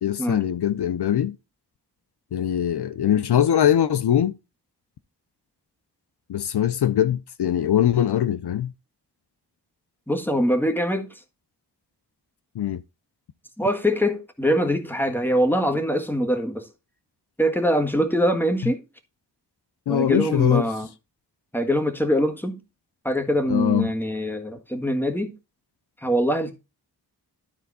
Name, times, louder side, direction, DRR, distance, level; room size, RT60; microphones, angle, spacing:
voice 1, 0.0-1.4 2.3-4.3 6.3-8.7 12.6-12.8 18.6-18.7 19.9-20.7 23.5-23.9, left 10 dB, 75° left, 0.6 m, -22 dB
voice 2, 10.1-11.1 13.6-16.7 17.4-18.8 19.9-20.9 21.5-22.6 23.1-25.3 26.0-26.6, equal, 5° left, 1.6 m, -23 dB
12.5 x 4.4 x 4.1 m
wide cardioid pair, 70°, 41 cm